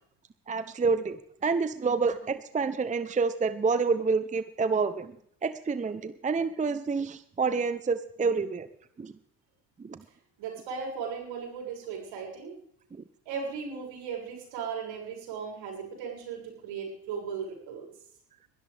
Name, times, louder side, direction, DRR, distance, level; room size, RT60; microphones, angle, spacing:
voice 1, 0.5-5.1 5.4-8.7 9.0-9.1 9.8-10.0, right 4 dB, 15° right, 13 dB, 0.7 m, -28 dB
voice 2, 10.4-12.6 13.2-17.9, right 6 dB, 65° right, 1 dB, 6.7 m, -37 dB
21.0 x 13.0 x 3.5 m, 0.62 s
hypercardioid pair, 75°, 47 cm